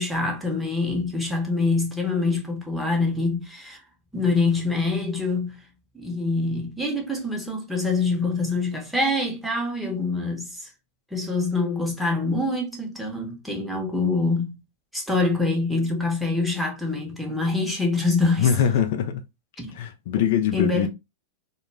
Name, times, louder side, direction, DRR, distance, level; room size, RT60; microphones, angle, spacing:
voice 1, 0.0-3.8 4.1-5.6 5.9-10.7 11.1-14.6 14.9-18.5 19.6-19.8 20.5-20.9, left 3 dB, ahead, 0.9 m, -25 dB
voice 2, 18.4-19.2 19.8-20.9, left 8 dB, 65° left, 0.4 m, -22 dB
2.2 x 2.1 x 3.2 m
hypercardioid pair, 105°, 0 cm